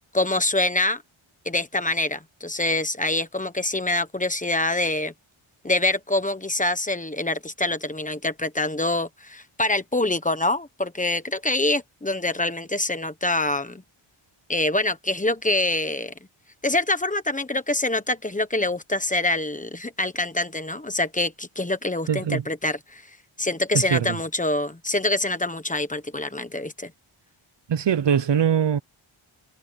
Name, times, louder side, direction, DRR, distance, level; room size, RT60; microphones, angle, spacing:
voice 1, 0.1-1.0 1.4-5.1 5.6-13.8 14.5-16.1 16.6-23.0 23.4-26.9, left 2 dB, 15° left, 1.2 m, -25 dB
voice 2, 22.1-22.4 23.9-24.2 27.7-28.8, right 8 dB, 55° right, 0.8 m, -22 dB
wide cardioid pair, 165°, 50 cm